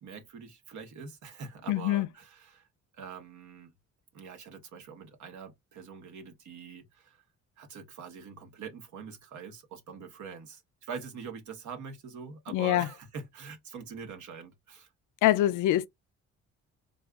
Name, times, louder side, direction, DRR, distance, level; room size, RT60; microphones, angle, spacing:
voice 1, 0.0-2.7 2.9-3.7 4.1-7.2 7.6-14.9, right 6 dB, 70° right, 1.1 m, -44 dB
voice 2, 1.7-2.1 12.5-12.9 15.2-15.9, left 14 dB, 85° left, 0.5 m, -24 dB
3.7 x 2.6 x 2.3 m
cardioid pair, 90°, 30 cm